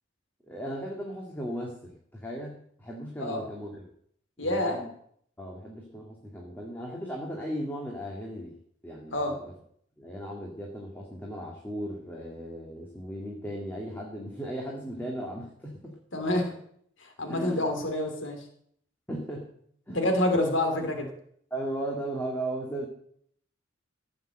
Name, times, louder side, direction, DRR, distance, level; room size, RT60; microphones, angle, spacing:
voice 1, 0.5-3.9 4.4-4.9 5.4-8.6 8.8-9.5 10.0-16.5 17.3-17.9 19.1-19.5 19.9-20.4 21.5-22.9, right 1 dB, 10° left, -1 dB, 2.0 m, -37 dB
voice 2, 4.4-4.8 9.1-9.4 16.1-16.5 17.2-18.4 19.9-21.1, left 1 dB, 75° left, 5 dB, 2.9 m, -27 dB
16.0 x 6.6 x 7.8 m, 0.65 s
head